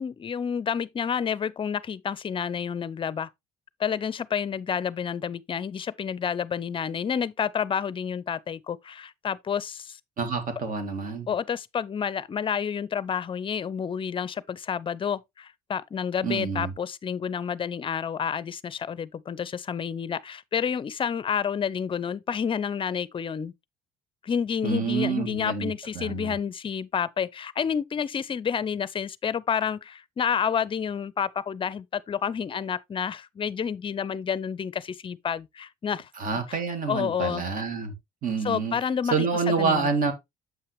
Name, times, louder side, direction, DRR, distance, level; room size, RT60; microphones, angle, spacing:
voice 1, 0.0-3.3 3.8-10.0 11.3-23.5 24.2-36.1 36.5-36.6 36.9-37.4 38.4-39.9, left 7 dB, 30° left, 0.5 m, -29 dB
voice 2, 10.2-11.3 16.2-16.7 24.6-26.4 36.2-37.9 38.2-38.8 39.1-40.1, right 5 dB, 55° right, 2.4 m, -27 dB
7.6 x 5.7 x 3.2 m
cardioid pair, 110°, 17 cm